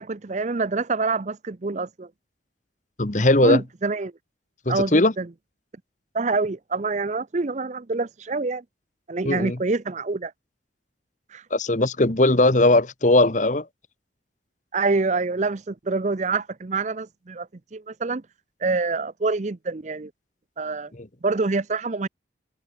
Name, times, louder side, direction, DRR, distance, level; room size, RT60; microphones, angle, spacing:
voice 1, 0.0-2.1 3.4-4.1 4.7-5.3 6.1-8.6 9.1-10.3 11.3-11.4 14.7-18.2 18.6-20.1 20.6-20.9 21.2-22.1, right 3 dB, 40° right, 0.6 m, -26 dB
voice 2, 3.0-3.6 4.6-5.1 9.2-9.6 11.5-13.7 21.0-21.1, left 2 dB, 40° left, 1.3 m, -19 dB
head